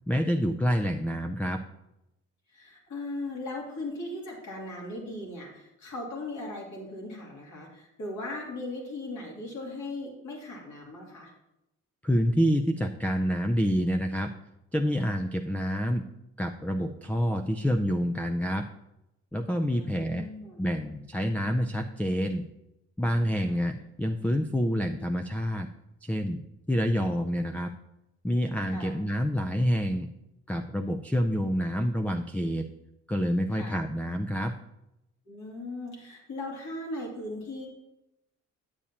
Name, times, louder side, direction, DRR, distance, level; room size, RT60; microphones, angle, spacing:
voice 1, 0.1-1.6 12.0-14.3 14.7-16.0 16.4-18.7 19.3-20.3 20.6-22.5 23.0-25.7 26.0-26.4 26.7-27.7 28.2-30.1 30.5-32.7 33.1-34.5, equal, 5° left, 6 dB, 0.3 m, -27 dB
voice 2, 2.5-11.3 19.7-20.6 23.4-23.7 28.7-29.0 33.5-33.8 35.3-37.7, left 2 dB, 70° left, -2 dB, 2.6 m, -38 dB
8.6 x 8.3 x 2.9 m, 0.89 s
cardioid pair, 90°, 30 cm